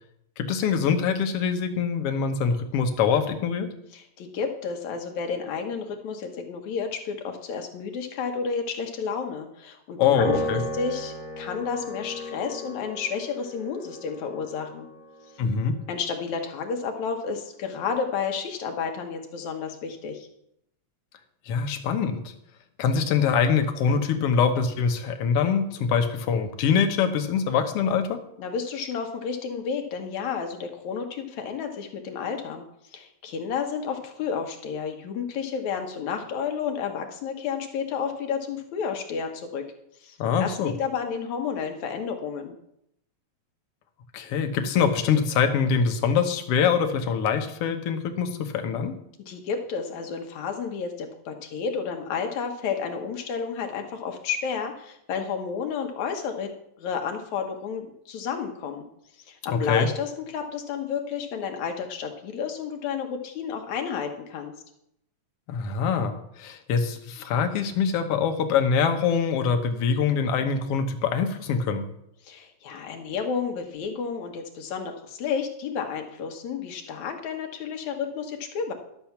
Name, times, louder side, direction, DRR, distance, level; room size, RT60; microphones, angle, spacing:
voice 1, 0.4-3.7 10.0-10.6 15.4-15.8 21.5-22.3 22.8-28.2 40.2-40.7 44.1-48.9 59.7-59.9 65.5-71.9, left 6 dB, 65° left, 6 dB, 1.8 m, -24 dB
voice 2, 3.9-10.3 10.7-14.9 15.9-20.3 28.4-32.6 32.9-39.6 40.0-42.5 49.3-56.5 56.8-58.9 59.3-64.5 72.2-78.7, left 6 dB, 80° left, 4 dB, 2.6 m, -31 dB
Piano, 10.2-16.7, equal, 70° right, 6.8 m, -35 dB
12.0 x 7.0 x 5.8 m, 0.75 s
omnidirectional pair, 3.3 m